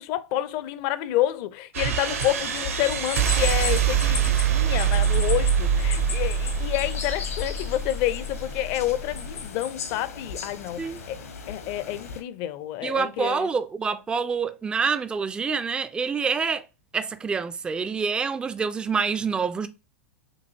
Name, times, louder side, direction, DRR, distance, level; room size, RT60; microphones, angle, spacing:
voice 1, 0.0-13.5, left 13 dB, 40° left, 0.5 m, -29 dB
sound 1, 1.7-9.5, right 8 dB, 65° right, 0.8 m, -25 dB
sound 2, 2.0-12.2, left 5 dB, 70° left, 1.1 m, -36 dB
voice 2, 12.8-16.6 16.9-19.7, right 5 dB, 10° right, 0.3 m, -27 dB
6.8 x 2.6 x 2.7 m
figure-of-eight pair, 95°, 8 cm